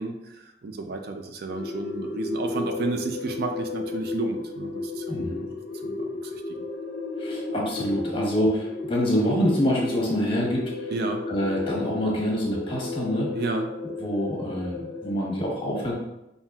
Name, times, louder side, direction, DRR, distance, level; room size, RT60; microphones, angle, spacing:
voice 1, 0.0-5.0 5.8-6.6 10.9-11.2 13.3-13.7, right 3 dB, 60° right, 5 dB, 0.4 m, -32 dB
sound 1, 1.5-15.2, left 2 dB, 65° left, 0.5 m, -33 dB
voice 2, 5.1-5.5 7.2-10.9 11.3-13.3 13.8-15.9, equal, 30° left, -3 dB, 1.0 m, -26 dB
5.6 x 2.7 x 2.3 m, 0.90 s
head